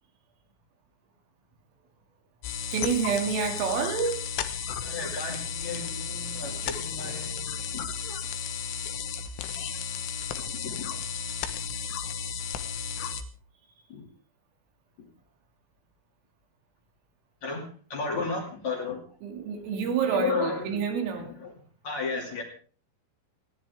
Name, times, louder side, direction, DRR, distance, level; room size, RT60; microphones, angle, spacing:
sound 1, 2.4-13.2, left 6 dB, 80° left, 3.6 m, -34 dB
voice 1, 2.7-4.3 19.2-21.3, right 6 dB, 90° right, 3 dB, 5.1 m, -28 dB
voice 2, 4.8-7.5 7.7-7.8 10.5-10.9 13.9-14.1 17.4-19.0 19.6-19.7 20.0-20.8 21.2-21.5 21.8-22.4, left 4 dB, 45° left, 0 dB, 3.1 m, -33 dB
28.5 x 10.5 x 3.6 m, 0.42 s
omnidirectional pair, 5.7 m